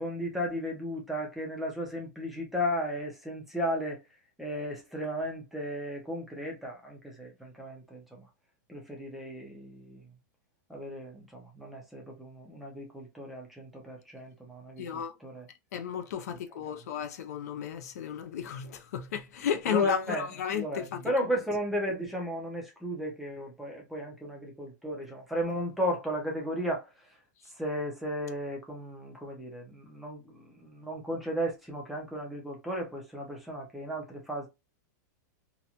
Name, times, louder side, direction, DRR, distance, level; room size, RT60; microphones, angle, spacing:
voice 1, 0.0-4.0 4.4-8.2 8.7-10.1 10.7-15.5 16.7-16.8 19.7-26.9 27.6-34.5, equal, ahead, 0.5 m, -35 dB
voice 2, 14.8-15.1 15.7-21.0, left 8 dB, 55° left, 0.4 m, -33 dB
2.8 x 2.1 x 2.4 m
supercardioid pair, 180°, 10 cm